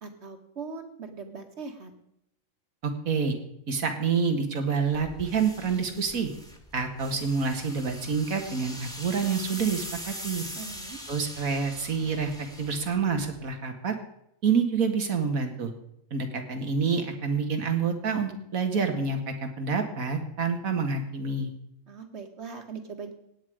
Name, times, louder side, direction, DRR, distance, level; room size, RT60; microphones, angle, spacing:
voice 1, 0.0-1.9 10.6-11.0 21.9-23.1, right 5 dB, 50° right, 5 dB, 1.8 m, -40 dB
voice 2, 2.8-3.4 3.7-6.3 6.7-10.4 11.1-13.9 14.4-15.7 16.1-21.5, right 5 dB, 85° right, 5 dB, 2.1 m, -27 dB
sound 1, 4.9-13.6, equal, 5° left, 1.7 m, -42 dB
17.0 x 9.5 x 5.0 m, 0.79 s
omnidirectional pair, 1.4 m